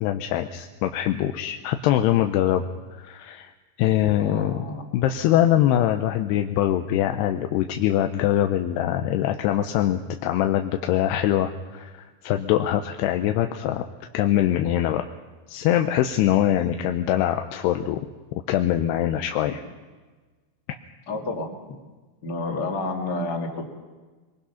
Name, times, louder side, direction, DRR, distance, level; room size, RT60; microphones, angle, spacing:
voice 1, 0.0-2.6 2.9-3.5 3.8-4.6 4.9-13.8 14.1-15.0 15.5-18.0 18.3-19.6, left 12 dB, 80° left, 6 dB, 2.7 m, -23 dB
voice 2, 4.2-4.8 16.5-16.8 21.1-21.8 22.2-23.6, left 2 dB, 35° left, 2 dB, 1.9 m, -30 dB
23.5 x 22.0 x 5.7 m, 1.3 s
omnidirectional pair, 5.1 m